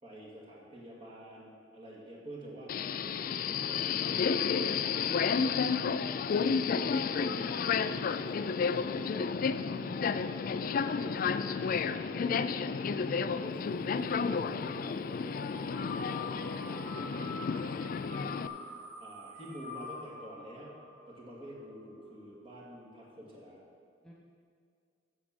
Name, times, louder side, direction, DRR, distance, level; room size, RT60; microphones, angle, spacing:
voice 1, 0.0-5.5 6.8-9.0 10.6-15.4 15.9-18.5 19.0-20.8 21.1-23.6, equal, 30° right, -4 dB, 2.2 m, -49 dB
Subway metro underground, 2.7-18.5, left 5 dB, 50° left, 0.3 m, -31 dB
voice 2, 4.7-5.7 24.0-24.1, equal, 5° left, -5 dB, 0.9 m, -52 dB
sound 1, 15.3-22.1, left 3 dB, 70° right, 2.0 m, -46 dB
8.6 x 6.5 x 7.1 m, 2.2 s
head